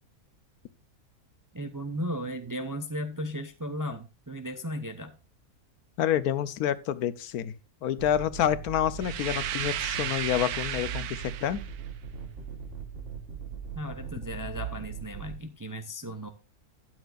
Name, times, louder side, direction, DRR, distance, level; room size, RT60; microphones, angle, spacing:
voice 1, 1.5-5.2 13.7-16.3, equal, 20° right, 0.5 m, -35 dB
voice 2, 6.0-7.5 7.8-11.6, left 10 dB, 80° left, 1.2 m, -28 dB
sound 1, 8.0-15.4, right 6 dB, 55° right, 2.0 m, -40 dB
sound 2, 9.0-11.8, right 11 dB, 80° right, 1.2 m, -34 dB
12.5 x 9.4 x 2.5 m
omnidirectional pair, 1.6 m